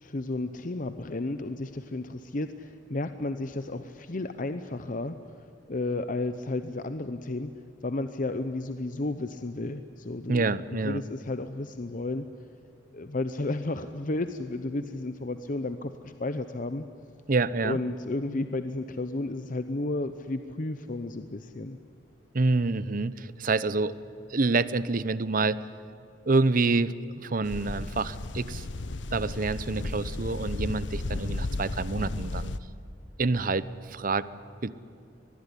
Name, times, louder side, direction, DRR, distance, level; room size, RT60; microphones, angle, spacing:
voice 1, 0.0-5.2 5.7-7.5 7.8-12.3 12.9-16.9 17.6-21.8, left 2 dB, 45° left, 10 dB, 0.8 m, -32 dB
voice 2, 10.3-11.0 17.3-17.8 22.3-23.9 24.3-25.6 26.3-28.6 29.1-32.5 33.2-34.3 34.6-34.7, right 3 dB, 45° right, 16 dB, 0.8 m, -27 dB
sound 1, 27.4-32.6, left 2 dB, 75° left, 0.9 m, -34 dB
23.5 x 20.0 x 10.0 m, 2.7 s
head